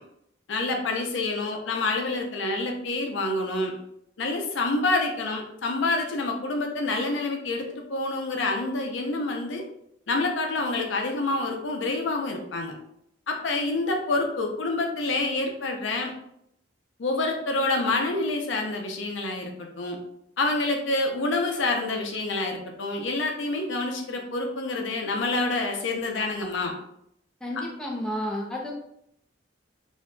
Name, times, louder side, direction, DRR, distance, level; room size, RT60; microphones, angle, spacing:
voice 1, 0.5-3.7 4.2-9.6 10.1-12.7 13.3-16.1 17.0-20.0 20.4-26.7, left 2 dB, 80° left, 2 dB, 0.6 m, -27 dB
voice 2, 27.4-28.7, equal, 5° left, -2 dB, 0.5 m, -31 dB
2.6 x 2.2 x 3.8 m, 0.75 s
head